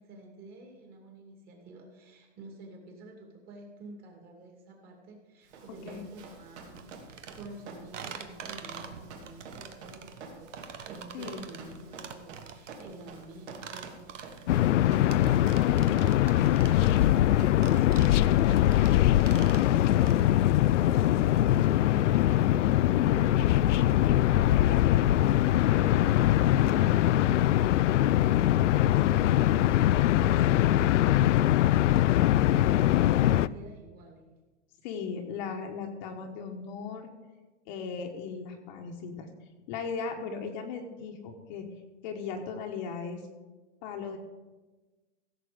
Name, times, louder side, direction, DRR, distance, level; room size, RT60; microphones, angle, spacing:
voice 1, 0.0-26.2 26.9-28.0 28.2-34.2, right 2 dB, 25° right, 1 dB, 2.5 m, -49 dB
Run, 5.5-18.7, right 4 dB, 65° right, 2.7 m, -49 dB
sound 1, 6.7-20.2, right 7 dB, 90° right, 1.4 m, -45 dB
voice 2, 11.1-11.5 23.0-23.3 25.7-26.2 26.7-27.0 34.8-37.1 37.7-39.3 39.7-41.7 42.0-43.2 43.8-44.2, left 5 dB, 40° left, 3 dB, 1.3 m, -37 dB
sound 2, 14.5-33.5, left 13 dB, 85° left, 0.5 m, -22 dB
16.0 x 7.5 x 5.1 m, 1.2 s
hypercardioid pair, 155°, 36 cm